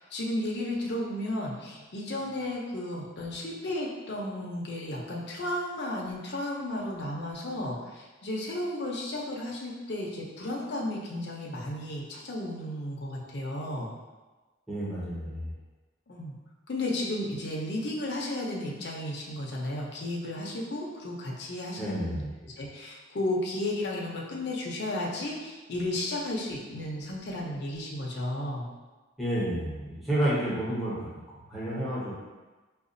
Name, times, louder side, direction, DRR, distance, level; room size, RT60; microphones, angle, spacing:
voice 1, 0.1-13.9 16.1-16.3 16.7-28.7, left 1 dB, 60° left, -3 dB, 0.6 m, -33 dB
voice 2, 14.7-15.5 21.8-22.3 29.2-31.2 31.5-32.1, right 1 dB, ahead, -10 dB, 0.7 m, -30 dB
4.9 x 2.3 x 2.5 m, 1.2 s
head